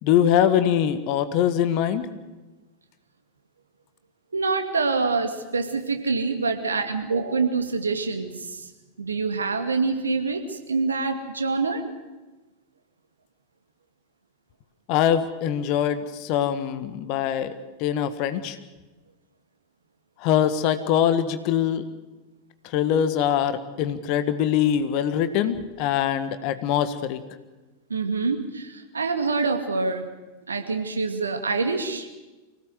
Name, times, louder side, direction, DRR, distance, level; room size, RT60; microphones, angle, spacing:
voice 1, 0.0-2.1 14.9-17.5 17.8-18.6 20.2-21.8 22.6-27.2, left 9 dB, 45° left, 11 dB, 1.7 m, -23 dB
voice 2, 4.3-8.7 9.0-11.8 27.9-30.1 30.5-32.1, right 4 dB, 75° right, 6 dB, 2.3 m, -26 dB
25.0 x 17.0 x 8.2 m, 1.2 s
figure-of-eight pair, 90°, 0 cm